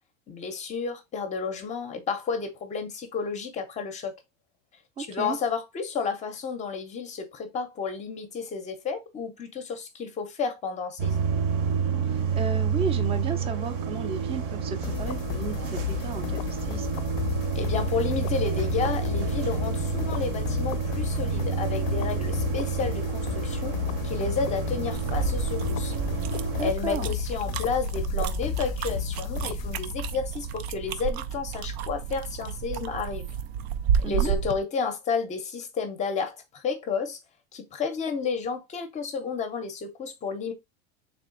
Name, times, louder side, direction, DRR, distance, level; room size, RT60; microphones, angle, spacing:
voice 1, 0.3-4.2 5.0-11.2 17.5-23.8 24.0-25.9 26.6-33.3 34.0-37.2 37.5-40.5, left 5 dB, 25° left, 0.6 m, -31 dB
voice 2, 5.0-5.4 12.1-17.0 26.6-27.2 34.0-34.3, right 5 dB, 20° right, 0.5 m, -34 dB
sound 1, 11.0-26.7, right 6 dB, 50° right, 0.9 m, -29 dB
sound 2, 14.8-30.3, left 13 dB, 65° left, 0.4 m, -33 dB
sound 3, 24.9-34.6, right 8 dB, 85° right, 0.6 m, -31 dB
3.5 x 3.3 x 3.7 m
supercardioid pair, 160°, 31 cm